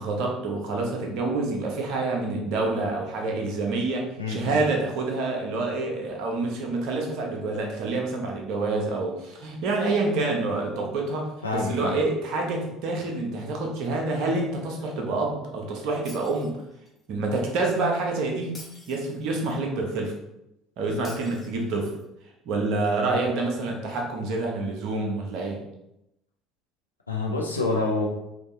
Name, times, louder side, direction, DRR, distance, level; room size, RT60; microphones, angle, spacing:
voice 1, 0.0-16.6 17.1-18.6 18.9-20.1 20.8-21.9 22.4-25.6, right 3 dB, 55° right, 1 dB, 0.9 m, -27 dB
voice 2, 4.2-4.6 11.4-12.0 27.1-28.1, left 3 dB, 85° left, -1 dB, 0.6 m, -27 dB
Shatter, 16.0-17.0 18.5-19.6 21.0-22.0, left 1 dB, 20° left, 1.4 m, -48 dB
5.0 x 2.8 x 2.6 m, 0.85 s
figure-of-eight pair, 60°, 0 cm